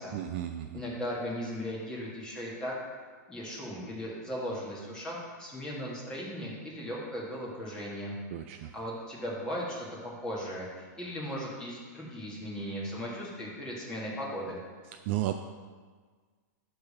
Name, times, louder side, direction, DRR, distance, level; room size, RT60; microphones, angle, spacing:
voice 1, 0.1-0.8 8.3-8.7 14.9-15.3, right 14 dB, 40° right, 6 dB, 0.3 m, -33 dB
voice 2, 0.7-2.7 3.3-8.1 8.5-14.6, equal, 10° left, -5 dB, 1.7 m, -37 dB
10.5 x 3.5 x 5.5 m, 1.5 s
hypercardioid pair, 155°, 10 cm